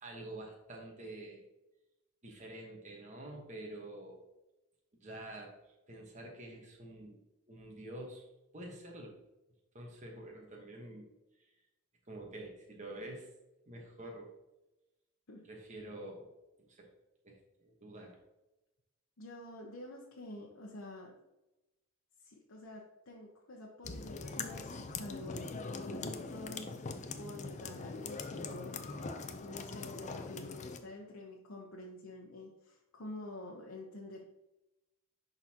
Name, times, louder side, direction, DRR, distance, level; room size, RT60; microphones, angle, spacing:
voice 1, 0.0-1.4 2.2-4.2 5.0-7.2 7.5-8.3 8.5-9.2 9.7-11.1 11.4-11.5 12.1-13.3 13.7-14.3 15.5-16.3 16.6-16.9 17.2-18.2, right 1 dB, 35° right, 0 dB, 1.2 m, -47 dB
voice 2, 19.2-21.1 22.2-28.9 29.4-34.2, left 1 dB, 70° left, -2 dB, 0.9 m, -48 dB
sound 1, 23.8-30.8, left 4 dB, 35° left, 0.5 m, -42 dB
10.5 x 3.9 x 2.9 m, 0.96 s
head